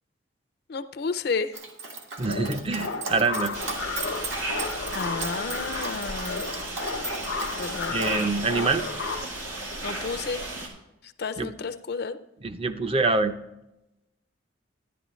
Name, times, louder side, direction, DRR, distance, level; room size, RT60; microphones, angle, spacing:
voice 1, 0.7-1.6 4.9-6.4 7.5-8.0 9.8-10.4 11.2-12.2, left 4 dB, 55° left, 10 dB, 0.5 m, -31 dB
Dog, 1.5-8.2, right 3 dB, 70° right, 1.7 m, -37 dB
voice 2, 2.2-3.5 7.9-8.9 11.4-11.5 12.4-13.3, right 3 dB, 30° right, 9 dB, 0.5 m, -25 dB
sound 1, 2.3-9.3, left 4 dB, 90° left, 0.8 m, -34 dB
sound 2, 3.5-10.7, right 2 dB, 90° right, 2.6 m, -35 dB
11.0 x 11.0 x 3.1 m, 0.91 s
head